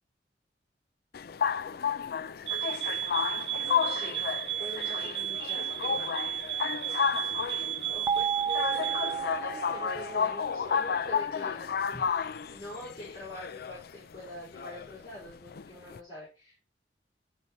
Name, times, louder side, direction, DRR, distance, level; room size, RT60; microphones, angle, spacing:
sound 1, 1.1-16.0, left 7 dB, 60° left, 0.5 m, -32 dB
sound 2, 2.5-9.2, right 11 dB, 85° right, 0.6 m, -33 dB
voice 1, 3.6-4.2 4.6-6.2 7.9-16.7, left 1 dB, 25° left, -9 dB, 5.1 m, -45 dB
sound 3, 8.1-11.0, right 6 dB, 15° right, 0.3 m, -33 dB
12.0 x 4.3 x 4.3 m, 0.30 s
head